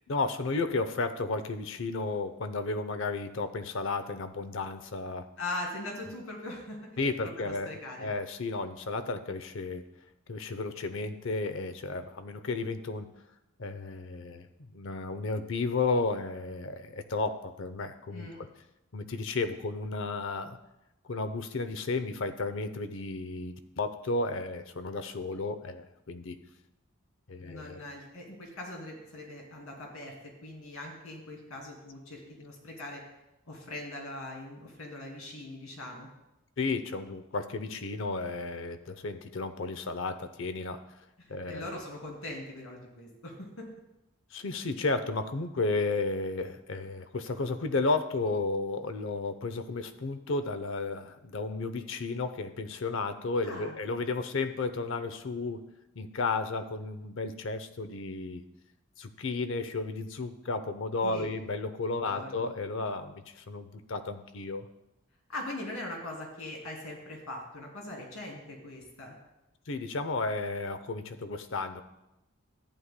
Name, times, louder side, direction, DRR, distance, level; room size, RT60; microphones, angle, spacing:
voice 1, 0.1-5.3 7.0-9.8 10.3-13.1 13.6-18.5 18.9-20.6 21.1-26.4 27.3-27.8 36.6-40.8 41.3-41.7 44.3-55.6 56.0-58.4 59.0-64.7 69.7-71.8, left 3 dB, 60° left, 10 dB, 0.6 m, -33 dB
voice 2, 5.4-6.9 7.4-8.1 18.1-18.4 27.4-33.0 33.5-36.1 41.2-43.7 53.4-53.7 61.0-61.3 62.0-62.4 65.3-69.2, left 1 dB, 80° left, -1 dB, 2.6 m, -41 dB
14.0 x 9.7 x 2.2 m, 0.92 s
head